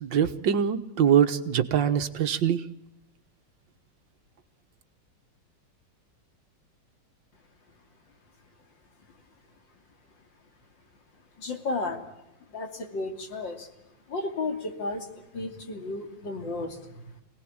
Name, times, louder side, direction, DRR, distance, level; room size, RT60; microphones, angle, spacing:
voice 1, 0.0-2.6, right 8 dB, 80° right, 9 dB, 2.0 m, -23 dB
voice 2, 11.4-12.0 12.5-13.7 14.1-15.1 15.3-17.2, left 3 dB, 85° left, 5 dB, 3.6 m, -33 dB
27.5 x 19.0 x 8.8 m, 0.91 s
omnidirectional pair, 2.0 m